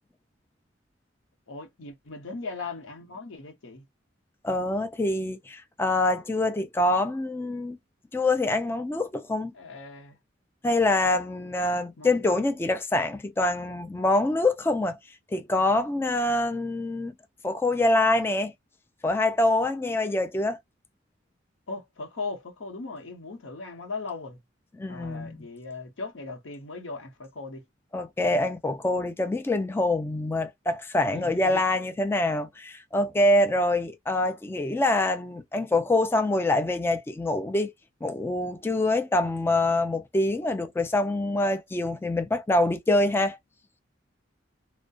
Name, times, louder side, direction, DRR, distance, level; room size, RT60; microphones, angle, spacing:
voice 1, 1.5-3.8 9.5-10.2 12.0-12.4 21.7-24.4 24.9-27.6 31.1-31.6, left 3 dB, 90° left, 0.8 m, -38 dB
voice 2, 4.4-7.8 8.1-9.5 10.6-15.0 15.3-17.1 17.4-18.5 19.0-20.6 24.8-25.5 27.9-37.7 38.0-43.4, left 2 dB, 10° left, 0.3 m, -25 dB
2.3 x 2.0 x 2.6 m
head